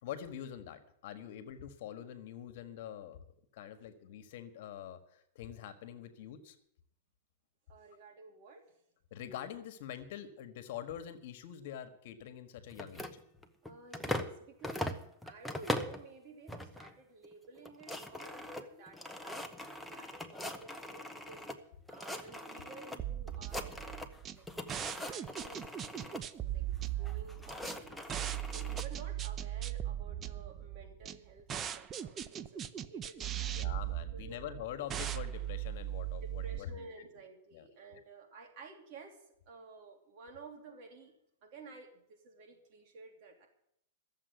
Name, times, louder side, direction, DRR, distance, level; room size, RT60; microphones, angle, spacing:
voice 1, 0.0-3.2 3.5-6.6 9.1-13.1 33.4-37.1 37.5-37.7 37.9-38.0, left 10 dB, 60° left, 11 dB, 1.5 m, -45 dB
voice 2, 7.7-8.7 13.6-14.9 15.2-21.4 21.9-24.5 24.9-28.0 28.5-33.6 34.1-34.4 36.4-39.2 39.5-41.1 41.4-43.5, right 3 dB, 45° right, 2 dB, 2.9 m, -53 dB
sound 1, 12.7-14.4 14.6-16.0 16.5-16.9 17.2-17.3 17.6-21.6 21.9-23.0 23.3-24.2 24.5-26.2 27.0-28.9, left 1 dB, ahead, 0.9 m, -41 dB
sound 2, 23.0-36.6, right 12 dB, 25° right, 0.6 m, -39 dB
13.5 x 7.5 x 9.3 m, 0.72 s
supercardioid pair, 140°, 0 cm